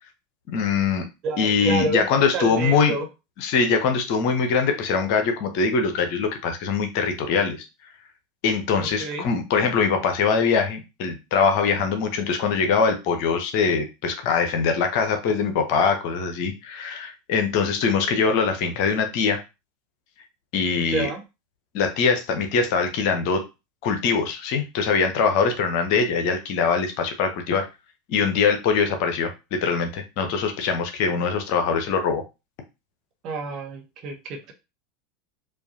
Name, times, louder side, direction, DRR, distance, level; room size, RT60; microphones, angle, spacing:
voice 1, 0.5-1.1 1.4-2.9 3.4-7.6 8.4-19.4 20.5-21.1 21.7-23.4 23.8-27.6 28.1-32.2, left 5 dB, 50° left, 5 dB, 0.8 m, -22 dB
voice 2, 1.2-2.0 2.3-3.1 8.8-9.3 20.8-21.2 33.2-34.5, right 3 dB, 40° right, 3 dB, 0.9 m, -29 dB
4.7 x 2.5 x 2.7 m, 0.26 s
figure-of-eight pair, 80°, 0 cm